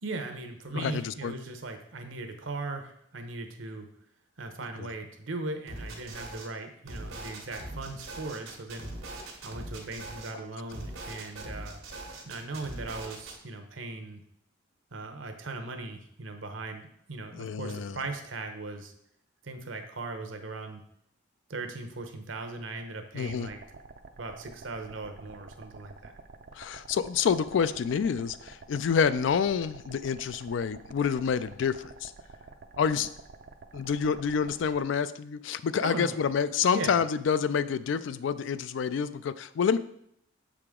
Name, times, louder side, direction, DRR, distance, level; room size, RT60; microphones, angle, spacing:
voice 1, 0.0-3.9 4.4-8.9 9.4-11.8 12.3-14.2 14.9-18.9 19.4-20.8 21.5-23.6 24.2-26.1 35.8-36.2 36.7-36.9, right 2 dB, 70° right, 5 dB, 0.9 m, -38 dB
voice 2, 0.7-1.3 4.8-4.9 17.3-18.0 23.1-23.5 26.5-32.1 32.8-33.1 33.7-39.8, left 6 dB, 65° left, 14 dB, 0.3 m, -28 dB
sound 1, 5.7-6.5 6.8-10.3 10.7-13.3, right 2 dB, 90° right, 1.3 m, -41 dB
sound 2, 23.2-34.8, right 4 dB, 50° right, 0.5 m, -49 dB
6.8 x 4.9 x 3.6 m, 0.73 s
head